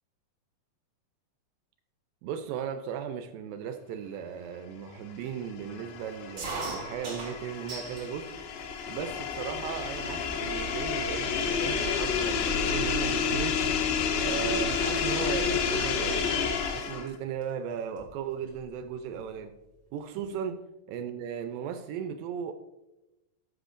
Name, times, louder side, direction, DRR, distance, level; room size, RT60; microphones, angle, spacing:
voice 1, 2.2-8.3 8.9-13.6 14.2-16.3 16.7-19.5 19.9-20.6 20.9-22.5, right 8 dB, 80° right, 8 dB, 2.2 m, -36 dB
sound 1, 5.3-17.2, left 6 dB, 90° left, 2.8 m, -30 dB
sound 2, 6.4-8.1 8.5-9.2 9.8-9.9 10.2-10.6 11.2-11.3 11.5-13.8 14.1-14.4 15.7-16.0 17.1-17.2 17.4-17.5 17.8-18.7, right 3 dB, 40° right, 1.6 m, -40 dB
13.0 x 8.2 x 2.5 m, 0.99 s
omnidirectional pair, 4.2 m